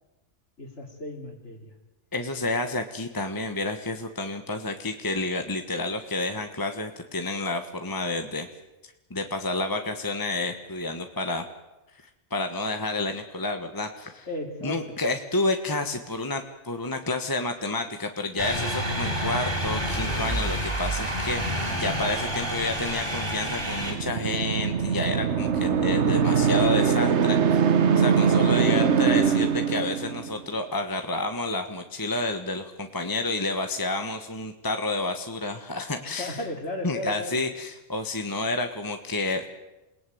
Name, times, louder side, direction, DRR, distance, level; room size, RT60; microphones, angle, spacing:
voice 1, 0.6-1.7 14.3-14.9 36.0-37.4, left 2 dB, 70° left, -4 dB, 3.4 m, -35 dB
voice 2, 2.1-8.5 9.1-11.5 12.3-14.3 14.6-21.4 21.7-36.4 36.8-39.5, left 2 dB, 20° left, 6 dB, 1.3 m, -30 dB
sound 1, 18.4-23.9, equal, 20° right, 6.2 m, -28 dB
sound 2, 23.4-30.4, right 6 dB, 70° right, 1.4 m, -22 dB
28.0 x 18.5 x 9.4 m, 1.0 s
omnidirectional pair, 1.2 m